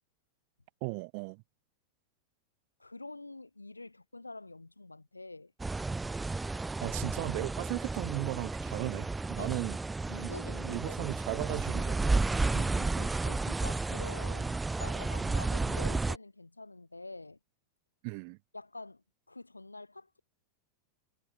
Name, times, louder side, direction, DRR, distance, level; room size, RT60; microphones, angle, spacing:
voice 1, 0.8-1.4 6.8-9.8 10.2-10.3 10.6-12.5 18.0-18.4, right 38 dB, 45° right, 2.4 m, -36 dB
voice 2, 2.8-5.5 9.4-9.6 10.1-11.1 12.5-17.4 18.5-20.2, left 2 dB, 80° left, 2.3 m, -46 dB
sound 1, 5.6-16.2, right 3 dB, 10° right, 1.3 m, -32 dB
figure-of-eight pair, 90°, 0 cm